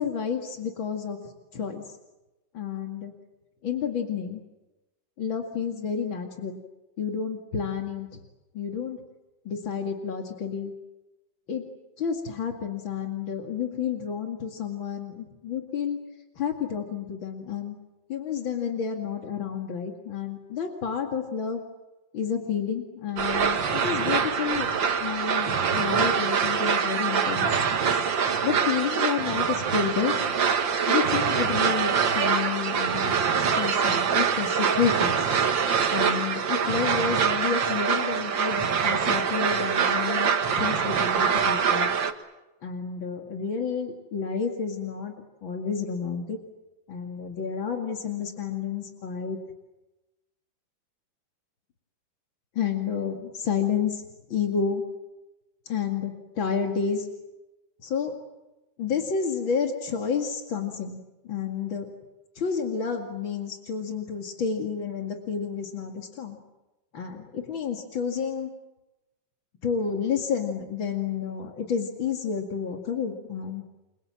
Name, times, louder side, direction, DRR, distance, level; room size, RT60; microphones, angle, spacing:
voice 1, 0.0-1.8 2.5-3.1 3.6-4.4 5.2-6.6 7.0-8.2 8.5-9.0 9.4-10.7 11.5-11.6 12.0-16.0 16.4-17.7 18.1-21.6 22.1-24.7 25.0-27.6 28.4-30.1 30.9-35.3 35.9-40.3 40.6-41.9 42.6-46.4 46.9-49.4 52.5-54.0 54.3-54.8 55.7-57.1 57.8-58.1 58.8-61.9 62.4-66.4 66.9-68.5 69.6-73.6, left 6 dB, 85° left, 4 dB, 3.0 m, -30 dB
sound 1, 23.2-42.1, right 6 dB, 80° right, 2.3 m, -24 dB
30.0 x 23.5 x 7.6 m, 1.0 s
omnidirectional pair, 2.1 m